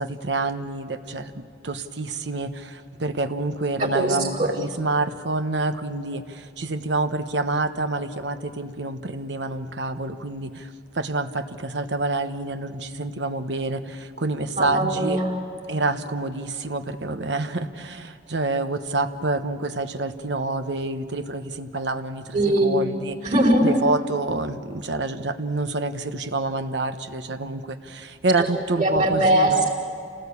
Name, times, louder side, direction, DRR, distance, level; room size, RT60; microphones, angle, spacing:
voice 1, 0.0-15.2 15.7-23.2 23.6-29.7, right 2 dB, 75° right, 9 dB, 1.1 m, -27 dB
voice 2, 3.8-4.5 14.5-15.3 22.3-22.7 23.2-23.7 28.4-28.5 28.8-29.7, right 1 dB, 45° right, -2 dB, 4.8 m, -21 dB
28.0 x 18.5 x 8.5 m, 2.5 s
head